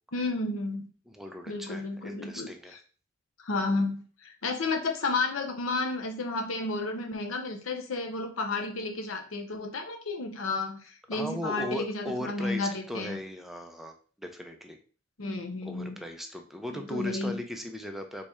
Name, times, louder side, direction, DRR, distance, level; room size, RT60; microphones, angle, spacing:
voice 1, 0.1-0.9 1.5-2.5 3.4-13.2 15.2-16.0 16.7-17.4, left 3 dB, 75° left, 4 dB, 0.7 m, -32 dB
voice 2, 1.1-2.8 11.1-14.8 15.6-18.3, left 1 dB, ahead, 4 dB, 0.5 m, -38 dB
4.1 x 3.2 x 3.5 m, 0.39 s
head